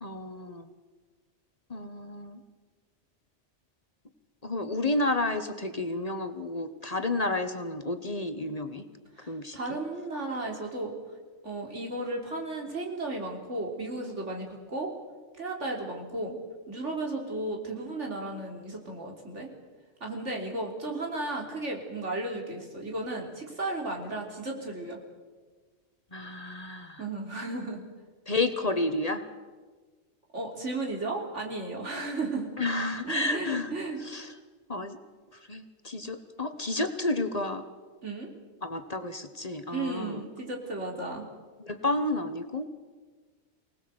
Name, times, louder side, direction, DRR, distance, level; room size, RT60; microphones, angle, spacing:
voice 1, 0.0-0.7 1.7-2.4 4.4-8.8 9.3-9.8 26.1-27.0 28.3-29.2 32.6-33.7 34.1-34.3 34.7-35.0 35.5-37.6 38.6-40.2 41.6-42.7, left 2 dB, 35° left, 9 dB, 1.3 m, -31 dB
voice 2, 9.2-10.9 11.4-14.9 15.4-16.4 16.7-19.5 20.0-25.0 27.0-27.9 30.3-32.5 33.0-34.0 38.0-38.3 39.7-41.3, right 2 dB, 80° right, 0 dB, 3.8 m, -34 dB
24.5 x 19.0 x 7.9 m, 1.4 s
omnidirectional pair, 1.2 m